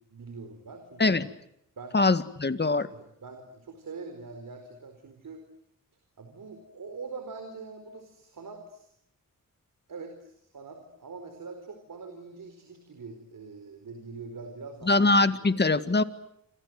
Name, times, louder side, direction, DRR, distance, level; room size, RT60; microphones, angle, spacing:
voice 1, 0.1-1.2 1.8-2.1 2.9-5.4 6.2-8.9 9.9-15.1 15.4-15.6, right 4 dB, 70° right, 6 dB, 4.6 m, -43 dB
voice 2, 1.9-2.9 14.9-16.0, left 3 dB, 30° left, 12 dB, 1.9 m, -22 dB
28.0 x 26.5 x 7.8 m, 0.74 s
cardioid pair, 85°, 34 cm